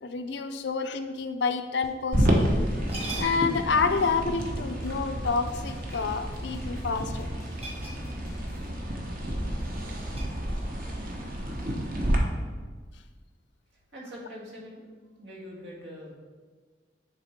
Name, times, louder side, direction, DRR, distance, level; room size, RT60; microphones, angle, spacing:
voice 1, 0.0-2.4 3.2-7.3, left 4 dB, 70° left, 8 dB, 0.5 m, -28 dB
sound 1, 1.8-2.0 2.3-2.6 2.9-8.7, left 1 dB, 15° left, 0.4 m, -46 dB
sound 2, 2.1-12.2, equal, 50° right, 0.9 m, -30 dB
sound 3, 2.8-3.7 5.4-6.3 7.5-8.5 8.7-8.9 9.4-10.9, right 2 dB, 35° right, 1.4 m, -41 dB
voice 2, 13.9-14.9 15.2-16.1, equal, 80° right, -4 dB, 1.7 m, -43 dB
7.5 x 3.6 x 4.5 m, 1.4 s
head